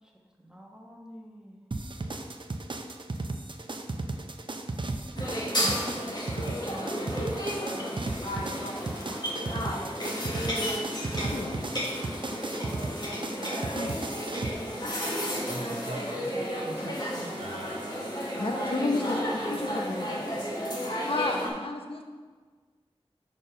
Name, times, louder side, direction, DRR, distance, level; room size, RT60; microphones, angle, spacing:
voice 1, 0.4-1.6 4.2-4.3 8.1-8.6 9.0-9.2 13.7-13.8, equal, 5° right, -1 dB, 1.1 m, -49 dB
sound 1, 1.7-14.5, right 2 dB, 50° right, 0.5 m, -35 dB
sound 2, 5.1-21.5, equal, 40° left, 1.4 m, -32 dB
voice 2, 11.3-11.9 13.7-13.9 18.4-20.3 21.1-22.1, left 2 dB, 60° left, 3 dB, 0.7 m, -32 dB
voice 3, 15.3-18.2, right 2 dB, 75° right, 1 dB, 0.8 m, -41 dB
5.2 x 4.2 x 5.5 m, 1.5 s
wide cardioid pair, 55°, 11 cm